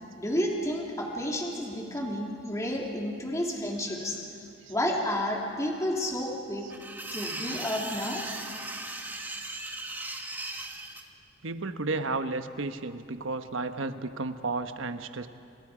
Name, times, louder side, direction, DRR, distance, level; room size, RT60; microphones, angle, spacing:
voice 1, 0.2-4.2 4.7-6.6 7.1-8.3, left 1 dB, 15° left, -1 dB, 3.1 m, -31 dB
sound 1, 6.7-11.0, right 2 dB, 10° right, 1.5 m, -37 dB
voice 2, 11.4-15.3, right 3 dB, 75° right, 9 dB, 1.1 m, -33 dB
28.0 x 28.0 x 5.0 m, 2.5 s
head